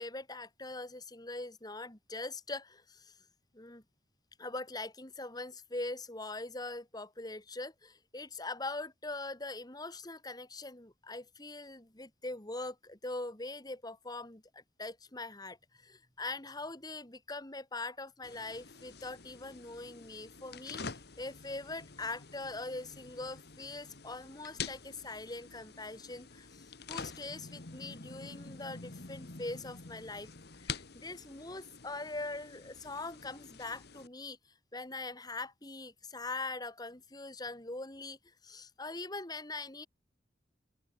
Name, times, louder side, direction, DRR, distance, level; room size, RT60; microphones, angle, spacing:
voice 1, 0.0-3.2 3.5-3.8 4.4-30.3 30.6-34.4 34.7-38.2 38.4-39.9, left 2 dB, 20° left, 2.2 m, -42 dB
sound 1, 18.2-34.1, left 5 dB, 60° left, 1.6 m, -47 dB
open air
head